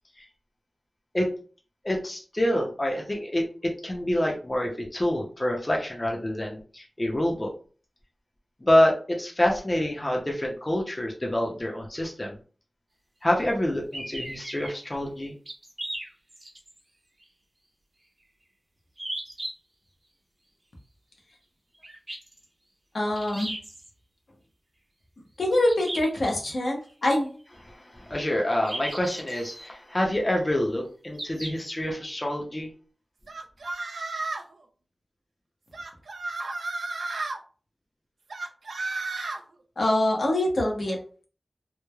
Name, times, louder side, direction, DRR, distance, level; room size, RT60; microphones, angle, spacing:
voice 1, 1.8-7.5 8.6-12.4 13.2-15.3 27.7-32.7, left 1 dB, 25° left, -1 dB, 0.6 m, -27 dB
sound 1, 13.9-14.7 15.5-16.8 17.2-17.3 19.0-19.5 21.8-22.4 23.1-23.9 25.7-26.5 28.6-29.7 31.1-31.7, right 1 dB, 40° right, 0.9 m, -37 dB
voice 2, 22.9-23.5 25.4-27.3 39.8-41.0, left 1 dB, 75° left, -1 dB, 0.7 m, -24 dB
sound 2, 33.3-34.5 35.7-37.4 38.3-39.4, right 3 dB, 85° right, 0.3 m, -33 dB
3.0 x 2.1 x 2.3 m, 0.40 s
wide cardioid pair, 80°, 0 cm